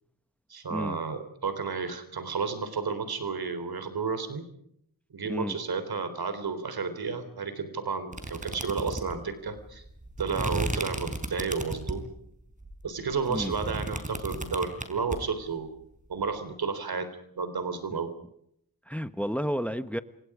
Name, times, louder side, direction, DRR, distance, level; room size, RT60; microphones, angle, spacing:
voice 1, 0.5-4.4 5.1-9.8 10.2-12.1 12.8-15.7 16.1-17.1 17.4-18.1, right 5 dB, 80° right, 3.8 m, -32 dB
voice 2, 5.2-5.6 13.3-13.5 18.9-20.0, equal, 5° left, 1.1 m, -31 dB
sound 1, 8.1-12.1 12.6-15.2, right 1 dB, 20° right, 4.5 m, -34 dB
30.0 x 26.5 x 5.0 m
wide cardioid pair, 130°, 36 cm